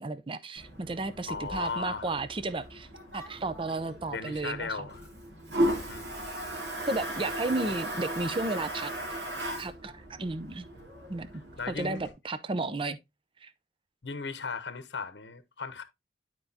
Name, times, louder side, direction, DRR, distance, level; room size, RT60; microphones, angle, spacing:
voice 1, 0.0-2.9 3.1-4.9 6.9-8.9 9.6-10.7 11.1-11.3 11.7-13.0 13.4-13.5, right 2 dB, 30° right, 0.5 m, -33 dB
Toilet flush, 0.6-12.1, right 1 dB, 80° right, 2.5 m, -36 dB
voice 2, 1.3-2.1 4.1-5.1 5.9-6.1 7.6-7.8 11.6-12.0 14.0-15.8, left 4 dB, 75° left, 0.9 m, -36 dB
11.0 x 4.5 x 2.7 m
head